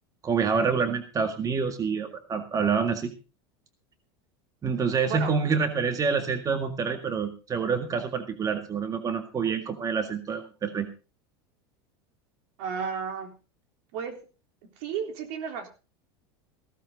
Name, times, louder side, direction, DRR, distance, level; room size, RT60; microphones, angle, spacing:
voice 1, 0.2-3.1 4.6-10.9, right 5 dB, 25° right, 7 dB, 1.9 m, -27 dB
voice 2, 5.0-5.3 12.6-13.3 13.9-14.3 14.8-15.7, right 6 dB, 65° right, 5 dB, 3.9 m, -33 dB
16.0 x 13.5 x 3.9 m, 0.32 s
supercardioid pair, 110°, 13 cm